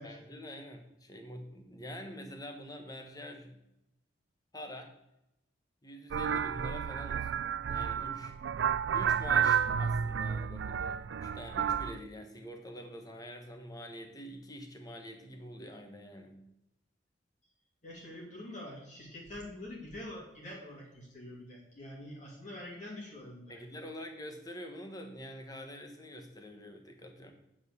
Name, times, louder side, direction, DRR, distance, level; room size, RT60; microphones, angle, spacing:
voice 1, 0.0-3.6 4.5-4.9 5.8-7.4 7.7-8.3 8.9-16.4 23.5-27.3, equal, 20° left, 5 dB, 1.3 m, -46 dB
sound 1, 6.1-12.0, right 7 dB, 75° right, 0.4 m, -31 dB
voice 2, 17.8-23.6, left 1 dB, 40° left, -3 dB, 2.9 m, -45 dB
9.1 x 5.0 x 6.9 m, 0.87 s
head